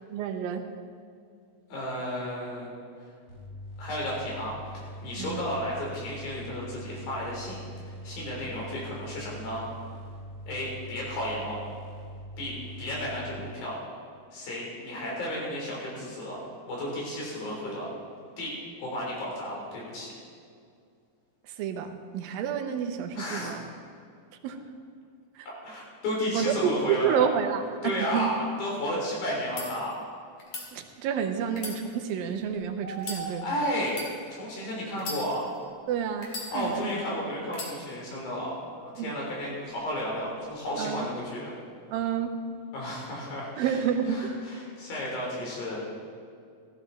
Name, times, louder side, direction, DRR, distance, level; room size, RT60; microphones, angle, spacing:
voice 1, 0.1-0.7 5.2-5.5 21.4-23.6 24.4-24.6 25.4-25.5 26.3-28.3 30.7-33.5 35.9-36.9 39.0-39.1 40.8-41.1 41.9-42.3 43.6-44.2, right 8 dB, 80° right, 6 dB, 2.6 m, -29 dB
voice 2, 1.7-2.7 3.0-3.1 3.8-4.5 4.8-7.6 8.0-9.6 10.5-11.6 12.4-13.7 14.3-16.4 16.7-17.9 18.4-18.5 18.8-20.1 23.1-23.6 25.6-27.2 27.8-30.0 33.2-33.9 34.3-35.5 36.5-38.5 38.8-41.5 42.7-43.8 44.1-45.8, left 1 dB, 80° left, -3 dB, 5.3 m, -33 dB
sound 1, 3.3-13.4, equal, 10° left, 1.8 m, -42 dB
sound 2, 29.3-29.7 30.4-30.7 31.5-32.4 33.0-33.2 33.9-34.1 34.9-35.6 36.2-36.9 37.5-37.7, left 2 dB, 45° left, 3.2 m, -38 dB
sound 3, 32.5-33.9 36.3-36.4 38.6-39.0 39.3-39.4 39.7-40.7, right 3 dB, 60° right, 0.9 m, -42 dB
15.0 x 14.5 x 4.0 m, 2.3 s
omnidirectional pair, 4.1 m